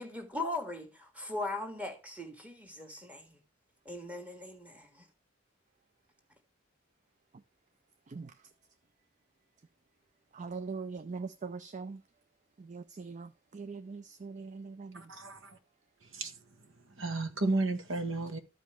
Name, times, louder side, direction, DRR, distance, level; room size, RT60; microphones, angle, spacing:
voice 1, 0.0-3.4 3.8-5.1, left 2 dB, 5° right, 1.6 m, -39 dB
voice 2, 10.3-12.0 12.6-15.0, right 4 dB, 35° right, 0.4 m, -42 dB
voice 3, 14.9-15.6 16.1-16.3 17.0-18.4, right 2 dB, 70° right, 1.3 m, -33 dB
13.5 x 5.2 x 3.3 m
head